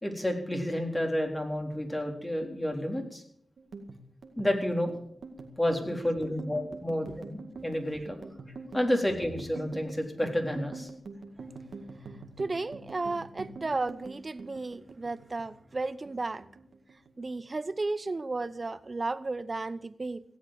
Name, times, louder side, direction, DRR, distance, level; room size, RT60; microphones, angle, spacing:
voice 1, 0.0-3.2 4.4-5.0 5.6-8.3 8.7-10.9, left 1 dB, 15° left, 4.0 m, -30 dB
sound 1, 3.6-16.1 16.4-17.4 17.7-18.1 18.4-19.1, right 3 dB, 75° right, 2.0 m, -45 dB
voice 2, 12.4-16.4 17.2-20.2, right 3 dB, 45° right, 0.8 m, -33 dB
17.0 x 8.2 x 7.7 m
cardioid pair, 45°, 0 cm